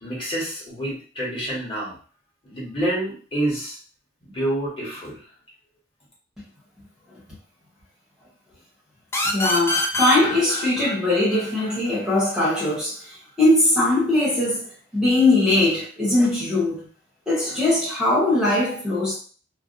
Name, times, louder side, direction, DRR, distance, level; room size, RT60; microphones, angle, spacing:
voice 1, 0.0-2.0 2.4-3.8 4.2-5.2, right 1 dB, 30° left, 1.2 m, -28 dB
sound 1, 9.1-12.5, left 2 dB, 15° left, 0.4 m, -26 dB
voice 2, 9.2-13.0 13.4-14.6 14.9-16.8 17.3-19.2, left 2 dB, 5° right, 0.8 m, -20 dB
2.5 x 2.1 x 2.6 m
head